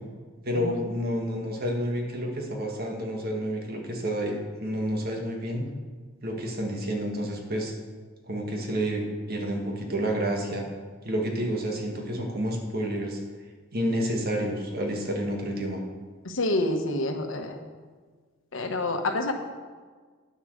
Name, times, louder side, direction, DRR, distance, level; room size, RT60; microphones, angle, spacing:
voice 1, 0.4-5.7 6.2-7.7 8.3-9.0 9.3-10.6 11.0-13.2 13.7-15.8, equal, 50° right, 1 dB, 1.7 m, -29 dB
voice 2, 16.2-17.6 18.5-19.3, left 2 dB, 70° left, 5 dB, 1.1 m, -28 dB
9.6 x 7.1 x 6.5 m, 1.5 s
head